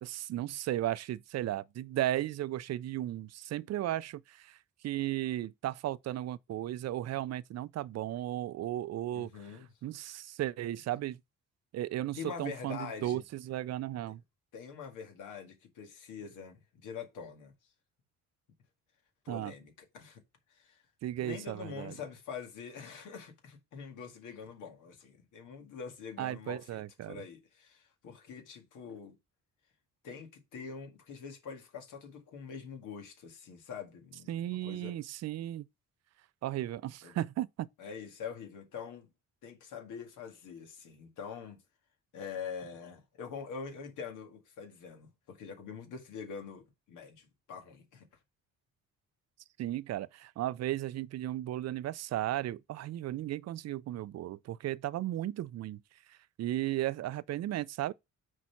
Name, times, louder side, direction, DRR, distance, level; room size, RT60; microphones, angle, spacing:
voice 1, 0.0-4.6 4.8-9.3 9.8-11.2 11.7-14.2 19.3-19.5 21.0-21.9 26.2-27.2 34.3-35.7 36.4-37.7 49.6-55.8 56.1-57.9, right 13 dB, 60° right, 0.5 m, -35 dB
voice 2, 9.1-9.7 12.2-13.2 14.5-17.5 19.2-20.2 20.5-20.8 21.2-29.2 30.0-34.4 34.6-35.0 37.0-37.2 37.8-39.1 39.4-41.6 42.1-48.1, left 6 dB, 85° left, 2.0 m, -44 dB
6.3 x 4.2 x 5.8 m
cardioid pair, 90°, 30 cm